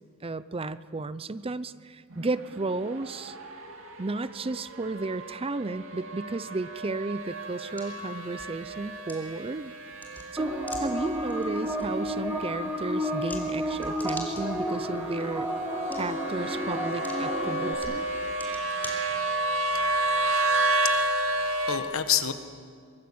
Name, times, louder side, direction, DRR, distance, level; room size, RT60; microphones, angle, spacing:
voice 1, 0.2-3.4 4.0-9.7 10.3-15.5 16.0-18.1, right 3 dB, 25° right, 15 dB, 0.6 m, -33 dB
sound 1, 2.1-21.8, right 2 dB, 65° right, 2.6 m, -32 dB
sound 2, 7.2-19.6, left 1 dB, 10° left, 3.8 m, -47 dB
sound 3, 10.4-17.7, equal, 10° right, 3.6 m, -31 dB
voice 2, 20.5-22.3, left 9 dB, 70° left, 9 dB, 1.5 m, -30 dB
24.5 x 23.0 x 8.7 m, 2.1 s
head